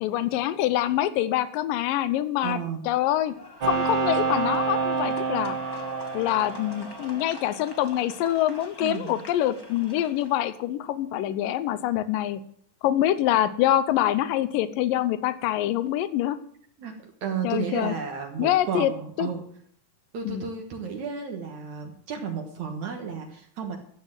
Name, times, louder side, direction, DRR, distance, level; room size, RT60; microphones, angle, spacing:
voice 1, 0.0-2.6 2.9-3.3 3.7-5.6 6.1-12.4 12.8-16.4 17.4-17.9 18.4-18.9 19.2-19.3 20.3-20.5, left 13 dB, 90° left, 14 dB, 2.5 m, -25 dB
voice 2, 2.4-2.9 8.8-9.1 16.8-19.5 20.1-23.8, right 6 dB, 65° right, 3 dB, 2.6 m, -33 dB
sound 1, 3.2-10.6, left 2 dB, 10° left, 1.3 m, -44 dB
sound 2, 3.6-7.3, right 5 dB, 40° right, 2.2 m, -28 dB
13.0 x 8.3 x 7.8 m, 0.63 s
omnidirectional pair, 3.8 m